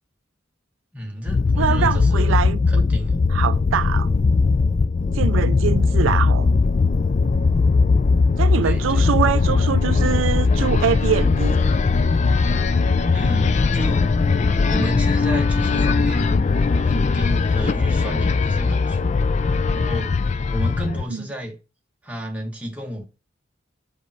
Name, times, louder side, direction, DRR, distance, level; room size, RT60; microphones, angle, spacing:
voice 1, 0.9-2.3 2.7-3.2 8.6-9.1 13.1-14.0 14.7-19.2 19.7-20.1 20.5-21.6 22.0-23.0, equal, 5° right, 1.2 m, -31 dB
sound 1, 1.3-21.0, left 4 dB, 35° left, 0.3 m, -19 dB
voice 2, 1.6-2.8 3.3-4.1 5.1-6.5 8.4-11.6 21.1-21.3, right 7 dB, 80° right, 0.4 m, -24 dB
5.2 x 4.2 x 5.9 m
head